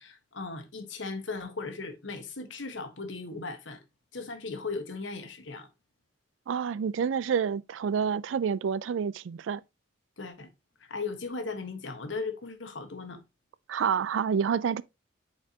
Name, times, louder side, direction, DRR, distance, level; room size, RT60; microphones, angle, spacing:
voice 1, 0.0-3.8 4.1-5.7 10.2-10.5 10.9-13.2, left 4 dB, 80° left, 1.3 m, -37 dB
voice 2, 6.5-9.6 13.7-14.8, right 7 dB, 85° right, 0.4 m, -28 dB
8.3 x 4.4 x 2.8 m
head